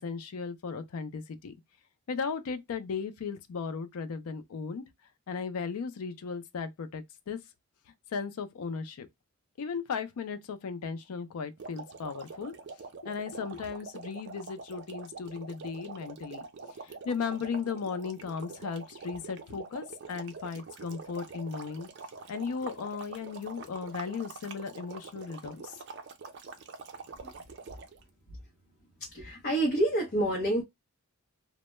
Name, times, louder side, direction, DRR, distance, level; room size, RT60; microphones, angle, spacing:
voice 1, 0.0-1.5 2.1-4.8 5.3-7.4 8.1-9.1 9.6-12.5 13.0-16.5 16.8-21.9 22.3-25.8, left 5 dB, 90° left, 0.4 m, -36 dB
sound 1, 11.6-28.0, right 4 dB, 55° right, 0.4 m, -45 dB
voice 2, 29.0-30.6, right 1 dB, 45° left, 0.6 m, -28 dB
2.1 x 2.0 x 2.9 m
head